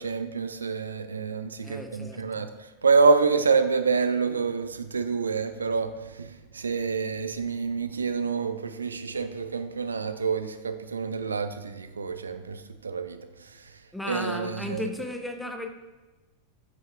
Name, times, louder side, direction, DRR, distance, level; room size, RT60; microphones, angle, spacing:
voice 1, 0.0-2.5 2.8-13.7 14.0-14.8, right 4 dB, 75° right, 10 dB, 0.4 m, -27 dB
voice 2, 1.6-2.5 13.9-15.7, left 1 dB, 5° left, 4 dB, 0.5 m, -35 dB
7.8 x 5.4 x 2.2 m, 1.2 s
figure-of-eight pair, 90°, 0 cm